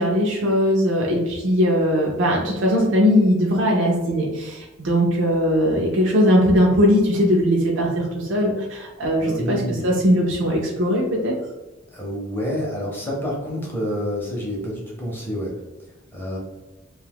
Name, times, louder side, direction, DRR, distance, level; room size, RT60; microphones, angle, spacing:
voice 1, 0.0-11.3, equal, 60° right, -3 dB, 0.5 m, -20 dB
voice 2, 9.2-9.9 11.9-15.5 16.1-16.4, equal, 10° left, -4 dB, 0.7 m, -28 dB
2.6 x 2.3 x 3.4 m, 1.1 s
head